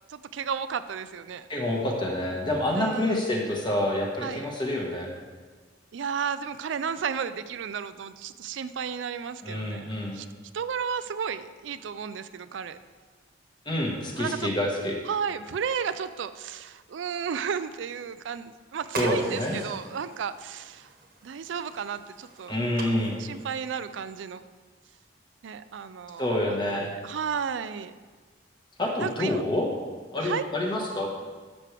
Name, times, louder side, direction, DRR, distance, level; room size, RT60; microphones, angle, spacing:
voice 1, 0.1-1.5 2.8-3.2 4.2-4.4 5.9-10.3 10.5-12.8 14.1-14.5 15.1-20.9 21.2-22.6 23.2-24.4 25.4-27.9 29.0-29.4 30.2-30.4, right 7 dB, 80° right, 13 dB, 0.4 m, -33 dB
voice 2, 1.5-5.1 9.4-10.2 13.6-15.0 18.9-19.6 22.5-23.2 26.2-26.9 28.8-29.7 30.1-31.1, left 1 dB, 25° left, -1 dB, 1.5 m, -27 dB
sound 1, 18.9-24.1, right 3 dB, 55° right, 1.2 m, -42 dB
13.0 x 6.2 x 3.4 m, 1.4 s
head